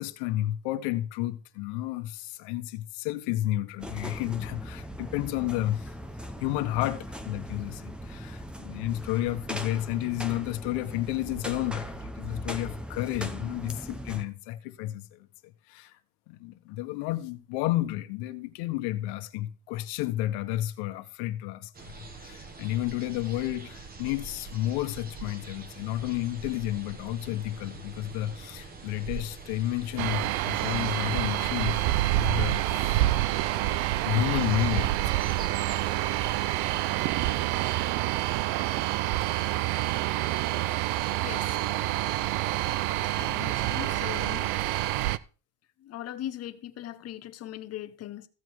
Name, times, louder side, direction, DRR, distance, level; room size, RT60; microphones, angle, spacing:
voice 1, 0.0-5.9 6.4-15.3 15.7-16.0 16.3-33.1 34.0-35.3, left 15 dB, 65° left, 1.3 m, -31 dB
sound 1, 3.8-14.3, equal, ahead, 0.8 m, -39 dB
sound 2, 21.7-37.7, right 3 dB, 20° right, 1.3 m, -44 dB
sound 3, 30.0-45.2, right 16 dB, 65° right, 0.7 m, -27 dB
voice 2, 41.2-41.6 43.2-44.5 45.8-48.3, left 12 dB, 35° left, 1.0 m, -39 dB
15.5 x 7.6 x 4.8 m
cardioid pair, 150°, 42 cm